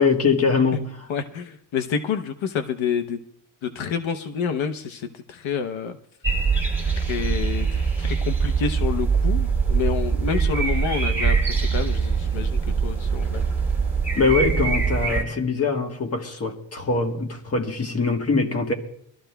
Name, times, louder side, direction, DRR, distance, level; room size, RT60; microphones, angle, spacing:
voice 1, 0.0-1.1 14.1-18.7, left 4 dB, 30° left, 1.4 m, -23 dB
voice 2, 1.1-3.2 3.6-6.0 6.8-13.4, left 6 dB, 80° left, 0.9 m, -28 dB
sound 1, 6.2-15.2, right 5 dB, 5° right, 1.9 m, -23 dB
24.0 x 13.0 x 2.3 m
wide cardioid pair, 170°, 47 cm